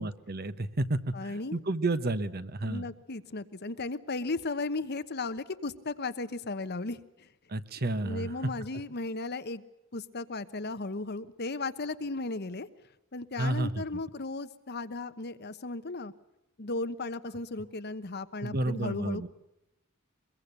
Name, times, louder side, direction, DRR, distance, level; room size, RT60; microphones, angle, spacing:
voice 1, 0.0-2.9 7.5-8.5 13.4-13.8 18.4-19.3, right 2 dB, 50° right, 12 dB, 1.1 m, -31 dB
voice 2, 1.1-1.6 2.6-7.3 8.0-9.6 9.9-12.7 13.1-16.1 16.6-19.3, left 3 dB, 55° left, 12 dB, 1.1 m, -35 dB
23.5 x 22.5 x 6.7 m, 0.89 s
head